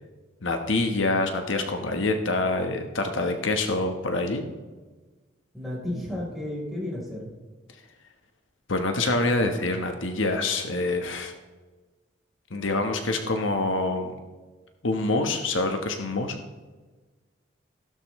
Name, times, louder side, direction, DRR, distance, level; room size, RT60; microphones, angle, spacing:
voice 1, 0.4-4.4 8.7-11.3 12.5-14.1 14.8-16.4, left 2 dB, 90° left, 5 dB, 1.2 m, -26 dB
voice 2, 5.5-7.2, left 1 dB, ahead, -5 dB, 3.9 m, -32 dB
15.5 x 12.5 x 3.2 m, 1.3 s
head